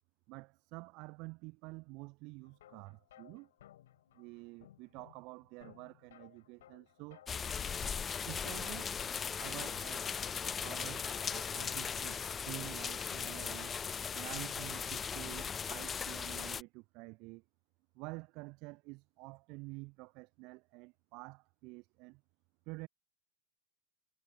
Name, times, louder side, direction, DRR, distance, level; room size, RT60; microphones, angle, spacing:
voice 1, 0.3-3.5 4.1-7.3 8.2-8.9 9.4-10.1 10.6-13.8 14.1-17.4 17.9-22.2 22.7-22.9, right 27 dB, 40° right, 0.4 m, -49 dB
sound 1, 2.4-12.3, left 13 dB, 60° left, 6.2 m, -61 dB
sound 2, 7.3-16.6, left 6 dB, 20° left, 0.4 m, -38 dB
figure-of-eight pair, 90°, 0 cm